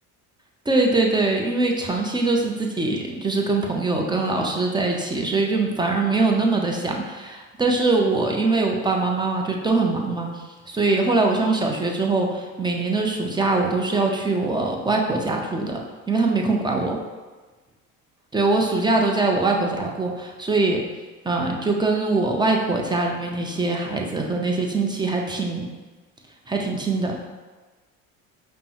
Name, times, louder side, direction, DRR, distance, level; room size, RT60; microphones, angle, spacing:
voice 1, 0.7-15.8 16.1-17.0 18.3-20.8 21.2-25.7 26.5-27.2, right 3 dB, 10° right, 1 dB, 0.5 m, -22 dB
5.1 x 2.1 x 2.9 m, 1.3 s
hypercardioid pair, 70°, 43 cm